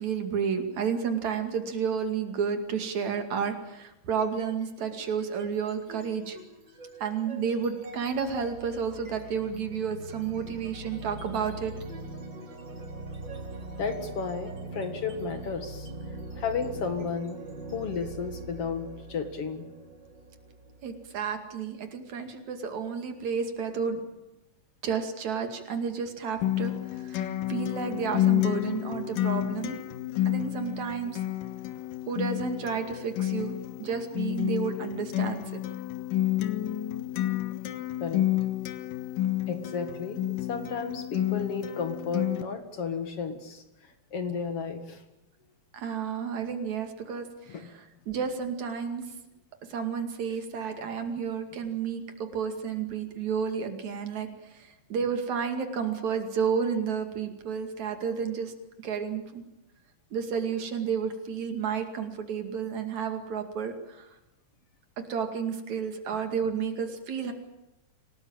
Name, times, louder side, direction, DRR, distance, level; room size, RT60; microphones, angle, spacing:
voice 1, 0.0-6.4 7.0-11.7 20.8-24.0 24.8-29.8 30.3-31.2 32.1-35.6 45.7-49.0 49.7-58.5 58.8-59.4 60.1-64.1 65.1-67.3, right 6 dB, 55° right, 6 dB, 3.4 m, -31 dB
sound 1, 4.1-4.6 5.0-21.6, right 2 dB, 30° right, 4.0 m, -42 dB
voice 2, 13.8-15.9 16.4-17.4 17.7-19.7 38.0-38.2 39.5-40.2 40.5-45.0 47.5-47.7, left 5 dB, 50° left, 8 dB, 2.2 m, -33 dB
Acoustic guitar, 26.4-42.4, left 14 dB, 70° left, 2.9 m, -30 dB
26.5 x 18.5 x 8.9 m, 0.95 s
omnidirectional pair, 4.2 m